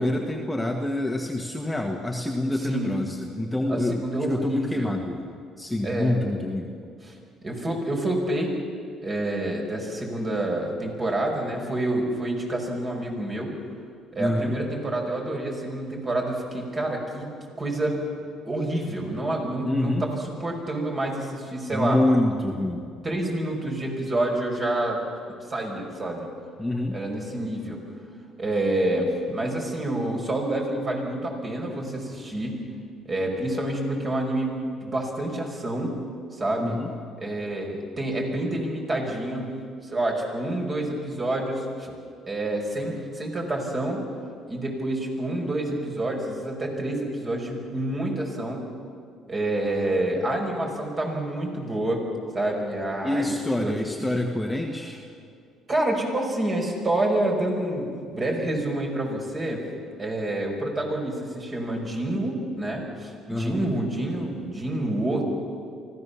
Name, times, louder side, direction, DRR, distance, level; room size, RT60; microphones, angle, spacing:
voice 1, 0.0-5.2 5.6-6.7 14.2-14.5 19.6-20.0 21.7-22.8 26.6-27.0 36.6-36.9 53.0-55.0 63.3-63.6, left 1 dB, 5° left, 1 dB, 1.6 m, -26 dB
voice 2, 3.7-5.0 5.8-6.2 7.4-8.5 9.0-13.5 14.1-17.3 17.6-18.0 18.5-22.0 23.0-25.0 25.5-26.3 26.9-27.8 28.4-32.6 33.1-34.5 34.8-35.9 36.3-36.8 37.2-39.5 39.9-41.9 42.3-44.0 44.5-48.6 49.3-52.0 52.3-53.7 55.7-59.6 60.0-65.2, right 1 dB, 30° right, 1 dB, 5.6 m, -28 dB
24.5 x 15.5 x 7.1 m, 2.2 s
cardioid pair, 90°, 0 cm